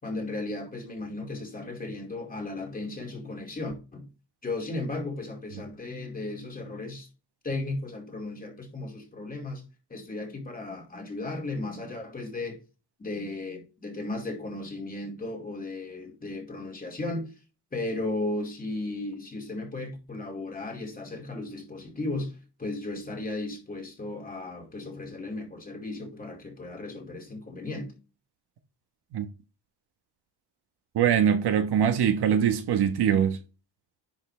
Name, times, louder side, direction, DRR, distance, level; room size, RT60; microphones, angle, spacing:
voice 1, 0.0-4.1 4.4-7.1 7.4-9.6 9.9-12.6 13.0-17.3 17.7-27.9, left 2 dB, 20° left, 2.5 m, -35 dB
voice 2, 30.9-33.4, right 8 dB, 65° right, 1.3 m, -23 dB
10.5 x 5.8 x 3.3 m
cardioid pair, 150°, 42 cm